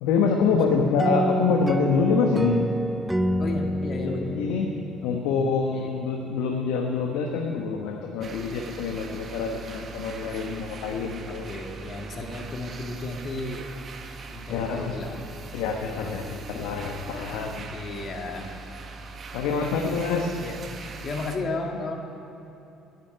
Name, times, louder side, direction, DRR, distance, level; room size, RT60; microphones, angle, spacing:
voice 1, 0.0-2.6 4.0-4.7 5.0-11.5 14.5-14.9 15.5-17.6 19.3-20.3, left 5 dB, 75° left, 2 dB, 1.0 m, -26 dB
sound 1, 1.0-5.6, equal, 10° right, 0.5 m, -27 dB
voice 2, 3.4-4.5 5.0-5.1 5.7-5.9 11.3-13.7 14.3-15.3 15.9-16.2 16.5-16.7 17.1-18.6 19.4-20.0 20.4-20.6 21.0-22.0, left 2 dB, 45° left, 2 dB, 1.8 m, -35 dB
sound 2, 8.2-21.4, right 4 dB, 45° right, 1.2 m, -41 dB
9.8 x 8.4 x 9.9 m, 2.9 s
hypercardioid pair, 65°, 0 cm